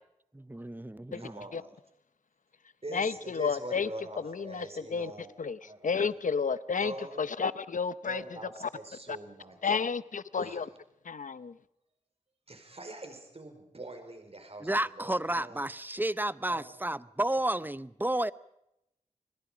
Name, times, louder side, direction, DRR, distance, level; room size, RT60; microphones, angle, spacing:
voice 1, 0.3-1.4 14.6-18.3, right 1 dB, 15° right, 0.7 m, -31 dB
voice 2, 1.1-1.7 2.8-5.3 5.6-6.1 6.8-7.3 8.0-9.8 10.4-10.7 12.5-15.6 16.5-16.7, right 2 dB, 50° right, 4.9 m, -44 dB
voice 3, 2.9-3.9 4.2-5.1 5.4-5.6 5.8-6.9 7.2-8.2 9.6-10.7 11.0-11.6, left 5 dB, 80° left, 0.7 m, -31 dB
29.0 x 21.0 x 5.1 m
cardioid pair, 45°, 13 cm